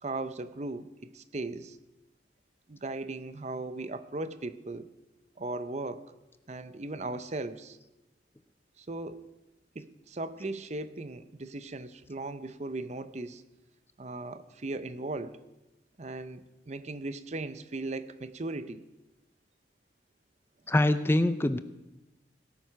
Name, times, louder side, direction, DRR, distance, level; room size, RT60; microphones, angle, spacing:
voice 1, 0.0-1.8 2.7-4.9 5.4-6.1 6.5-7.8 8.8-9.3 9.7-13.4 14.0-15.4 16.0-18.8, right 2 dB, 40° right, 12 dB, 0.6 m, -37 dB
voice 2, 20.7-21.6, left 1 dB, 15° left, 11 dB, 0.4 m, -24 dB
17.5 x 9.5 x 5.7 m, 0.97 s
head